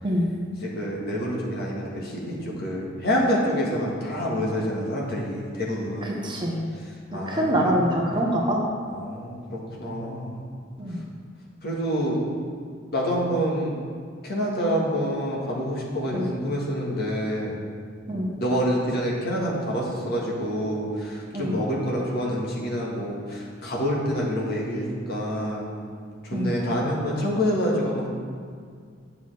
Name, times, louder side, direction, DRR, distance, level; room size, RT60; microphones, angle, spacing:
voice 1, 0.6-6.2 6.8-7.9 8.9-10.4 11.6-12.2 12.9-13.7 14.2-17.6 18.4-25.7 26.2-28.1, equal, 55° left, -4 dB, 1.7 m, -27 dB
voice 2, 6.0-6.6 7.3-8.6 10.8-11.0 16.1-16.3 18.1-18.3 21.3-21.6 26.3-26.5, equal, 25° right, -1 dB, 1.0 m, -25 dB
9.8 x 6.8 x 3.4 m, 2.1 s
head